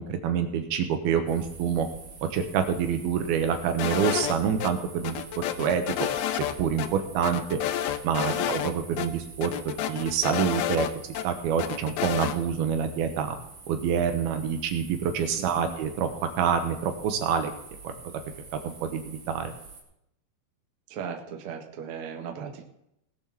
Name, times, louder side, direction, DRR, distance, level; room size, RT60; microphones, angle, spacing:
voice 1, 0.0-1.9 2.3-6.1 6.6-7.6 8.0-10.9 11.2-13.3 13.7-16.1 16.4-17.5 17.8-18.1 18.6-19.5, right 7 dB, 70° right, 7 dB, 2.8 m, -27 dB
sound 1, 1.3-19.8, right 4 dB, 40° right, 3.8 m, -47 dB
sound 2, 3.8-4.7 5.0-6.5 6.8-6.9 7.2-8.7 9.0-9.1 9.4-11.2 11.6-12.4, left 11 dB, 80° left, 2.4 m, -29 dB
voice 2, 15.4-15.7 20.9-22.6, right 7 dB, 90° right, 2 dB, 1.2 m, -37 dB
18.5 x 7.1 x 6.1 m, 0.82 s
omnidirectional pair, 5.0 m